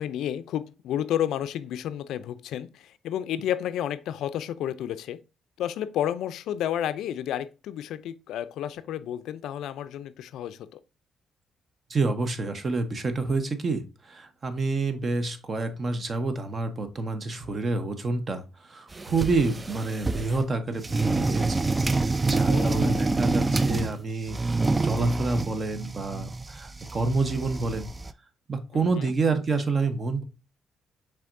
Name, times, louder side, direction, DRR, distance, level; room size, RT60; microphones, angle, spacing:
voice 1, 0.0-5.2 5.6-10.8 22.5-23.1 28.7-29.1, left 10 dB, 80° left, 0.4 m, -31 dB
voice 2, 11.9-27.9 28.5-30.2, right 3 dB, 40° right, 0.9 m, -28 dB
sound 1, 18.9-20.4 20.8-24.0 24.3-28.1, right 3 dB, 20° right, 0.3 m, -27 dB
5.7 x 3.5 x 2.5 m
cardioid pair, 90°, 0 cm